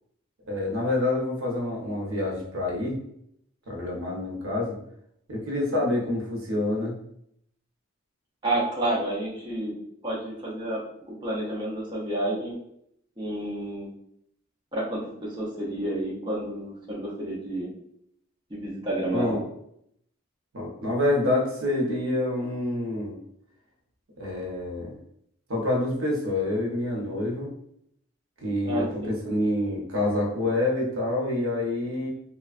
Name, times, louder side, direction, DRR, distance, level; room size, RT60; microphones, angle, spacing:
voice 1, 0.5-3.0 3.7-4.8 5.3-7.0 19.1-19.4 20.5-23.1 24.2-24.9 25.5-27.5 28.4-32.1, left 1 dB, 80° right, -1 dB, 0.8 m, -27 dB
voice 2, 8.4-9.7 10.0-10.8 11.1-12.6 13.2-13.9 14.7-17.7 18.5-19.4 28.6-29.1, right 1 dB, 20° right, -5 dB, 0.6 m, -30 dB
3.0 x 2.2 x 2.4 m, 0.72 s
head